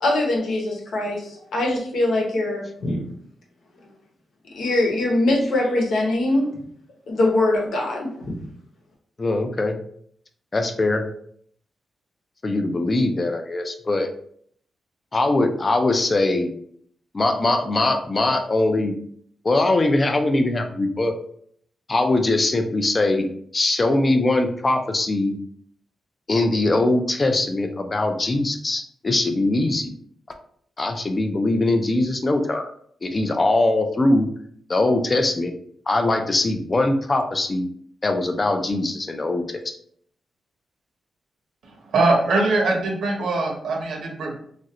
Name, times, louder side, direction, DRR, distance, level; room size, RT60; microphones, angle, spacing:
voice 1, 0.0-3.0 4.5-6.5 7.1-8.3, left 2 dB, 85° left, -1 dB, 1.0 m, -22 dB
voice 2, 9.2-9.8 10.5-11.0 12.4-14.1 15.1-16.5 17.1-19.0 19.4-21.1 21.9-23.3 23.5-25.4 26.3-29.9 30.8-32.7 33.0-34.3 34.7-35.5 35.9-37.7 38.0-39.7, left 2 dB, 25° left, 5 dB, 0.3 m, -21 dB
voice 3, 41.9-44.4, right 2 dB, 80° right, 1 dB, 0.8 m, -21 dB
3.1 x 2.5 x 2.8 m, 0.64 s
wide cardioid pair, 180°, 0 cm